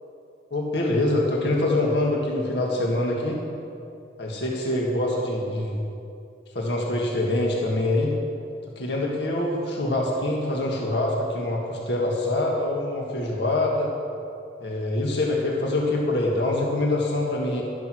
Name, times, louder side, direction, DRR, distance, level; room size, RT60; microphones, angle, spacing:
voice 1, 0.5-3.4 4.2-5.8 6.6-8.1 8.8-13.9 14.6-17.6, left 1 dB, 70° left, -2 dB, 1.8 m, -25 dB
12.5 x 10.5 x 6.3 m, 2.6 s
head